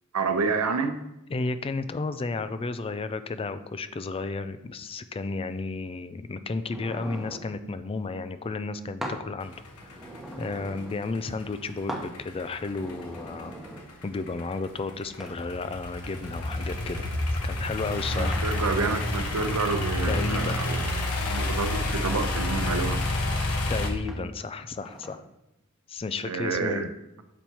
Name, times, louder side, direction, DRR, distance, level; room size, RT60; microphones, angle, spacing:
voice 1, 0.1-1.0 18.1-20.8 21.3-23.0 26.3-26.9, right 4 dB, 85° right, 7 dB, 0.7 m, -28 dB
voice 2, 1.3-9.5 9.9-10.0 10.4-13.5 14.0-17.1 17.4-18.4 20.1-20.6 23.7-25.2 25.9-26.9, left 3 dB, 25° left, 11 dB, 0.3 m, -33 dB
sound 1, 6.7-7.5 9.0-9.3 9.7-11.0 11.9-12.1 12.6-13.9 15.2-15.4 16.0-16.8 18.3-18.6 19.2-20.2 21.3-21.5 22.1-22.9 24.1-24.3 24.7-25.2, right 1 dB, ahead, 0.9 m, -41 dB
sound 2, 9.4-23.9, left 1 dB, 75° left, 1.1 m, -29 dB
7.1 x 4.5 x 4.3 m, 0.88 s
head